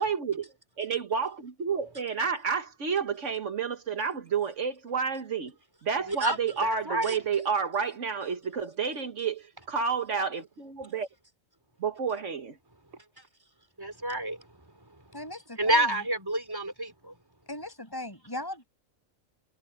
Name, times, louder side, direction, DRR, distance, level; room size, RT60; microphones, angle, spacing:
voice 1, 0.0-5.5 5.8-11.1 11.8-12.6, right 6 dB, 60° right, 1.7 m, -30 dB
voice 2, 6.1-7.2 13.8-14.4 15.6-17.1, right 1 dB, 15° right, 3.0 m, -28 dB
voice 3, 15.1-16.0 17.5-18.7, left 1 dB, 15° left, 6.8 m, -38 dB
omnidirectional pair, 1.4 m